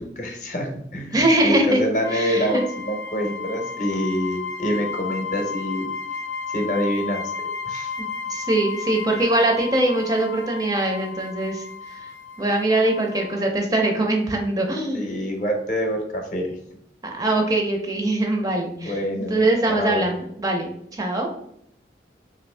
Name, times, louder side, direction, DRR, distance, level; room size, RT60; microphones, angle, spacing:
voice 1, 0.0-5.9 6.5-7.3 7.6-7.9 14.9-16.6 18.8-20.1, equal, 45° left, 3 dB, 0.6 m, -26 dB
voice 2, 1.1-1.8 2.1-2.7 8.0-12.1 12.4-15.1 17.0-19.0 19.3-21.3, right 1 dB, 20° right, 2 dB, 0.4 m, -22 dB
sound 1, 2.0-13.5, left 5 dB, 85° left, 0.4 m, -33 dB
2.9 x 2.5 x 3.2 m, 0.71 s
head